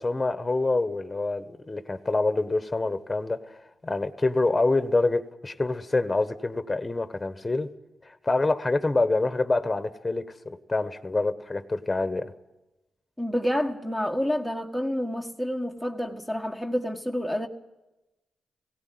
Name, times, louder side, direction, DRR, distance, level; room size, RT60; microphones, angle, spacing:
voice 1, 0.0-7.7 8.0-12.3, left 2 dB, 25° left, 1.3 m, -26 dB
voice 2, 13.2-17.5, equal, 5° right, 1.8 m, -28 dB
17.5 x 17.0 x 9.4 m
supercardioid pair, 50°, 0 cm